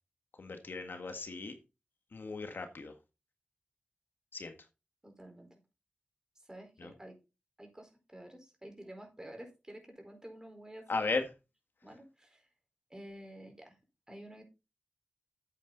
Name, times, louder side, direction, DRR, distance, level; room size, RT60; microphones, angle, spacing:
voice 1, 0.4-1.5 2.1-2.9 4.3-4.5 6.8-6.9 10.9-11.3, left 3 dB, 75° left, 7 dB, 1.8 m, -36 dB
voice 2, 5.0-5.6 6.4-7.2 7.6-11.1 11.8-12.5 12.9-13.7 14.1-14.4, right 1 dB, 20° right, 3 dB, 4.6 m, -50 dB
8.7 x 8.5 x 4.0 m, 0.27 s
wide cardioid pair, 70°, 4 cm